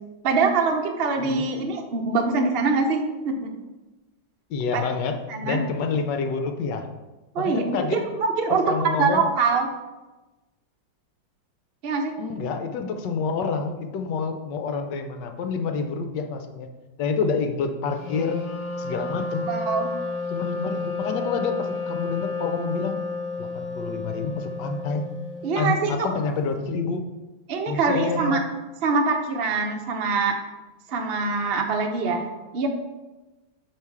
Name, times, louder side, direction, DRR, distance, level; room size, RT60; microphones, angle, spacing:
voice 1, 0.2-3.5 4.7-4.8 5.3-5.6 7.3-7.6 7.9-8.6 9.0-9.7 11.8-12.2 19.5-19.9 25.4-26.1 27.5-28.4 28.8-30.4 30.9-32.2 32.5-32.7, right 4 dB, 60° right, 3 dB, 0.6 m, -24 dB
voice 2, 4.5-6.9 7.4-8.0 8.7-9.3 12.2-16.7 17.0-18.4 18.8-19.5 20.3-23.0 23.4-25.1 25.6-27.0 27.7-28.4, left 5 dB, 75° left, 7 dB, 1.2 m, -28 dB
Wind instrument woodwind instrument, 18.0-25.8, left 3 dB, 40° left, 0.5 m, -31 dB
8.9 x 3.1 x 4.7 m, 1.1 s
omnidirectional pair, 2.0 m